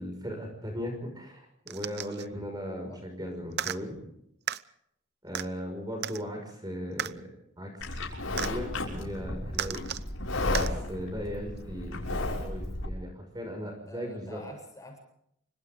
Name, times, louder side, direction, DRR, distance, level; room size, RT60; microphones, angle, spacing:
voice 1, 0.0-4.0 5.2-7.2 7.6-7.9 8.3-9.8 10.5-14.4, equal, 20° right, 3 dB, 5.9 m, -38 dB
sound 1, 1.7-2.3 3.5-3.8 4.5-4.6 5.3-5.5 6.0-6.2 7.0-7.1 8.4-8.5 9.5-10.1 10.5-10.7 11.6-11.7, right 10 dB, 50° right, 0.8 m, -33 dB
voice 2, 2.7-3.0 13.6-15.0, equal, 15° left, 2 dB, 7.8 m, -47 dB
Livestock farm animals working animals, 7.8-12.9, left 2 dB, 70° left, 6.3 m, -33 dB
29.5 x 25.5 x 3.9 m, 0.76 s
head